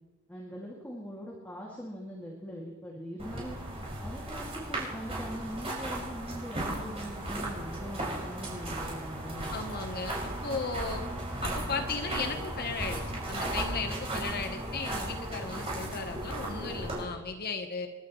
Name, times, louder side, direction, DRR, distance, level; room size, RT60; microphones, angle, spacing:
voice 1, 0.3-3.6 4.0-9.5, equal, 10° left, -5 dB, 2.4 m, -41 dB
walking on wood chips, 3.2-17.0, right 1 dB, 30° right, 5.8 m, -36 dB
voice 2, 9.5-11.0 11.4-17.9, left 4 dB, 45° left, 6 dB, 1.1 m, -36 dB
29.0 x 11.5 x 3.2 m, 1.3 s
head